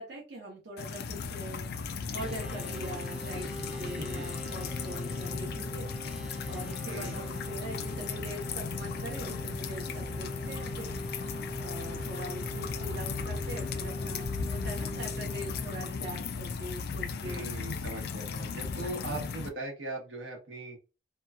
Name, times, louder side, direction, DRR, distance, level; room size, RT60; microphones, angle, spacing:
voice 1, 0.0-1.7 2.1-5.9 6.5-10.9 11.6-17.4 18.8-19.2, right 1 dB, 65° right, -3 dB, 0.8 m, -42 dB
sound 1, 0.8-19.5, left 5 dB, 60° left, 0.3 m, -36 dB
sound 2, 2.1-16.7, equal, 5° right, 0.5 m, -41 dB
voice 2, 6.8-7.2 17.2-20.8, right 2 dB, 85° right, 1 dB, 1.0 m, -39 dB
2.9 x 2.3 x 2.2 m, 0.30 s
head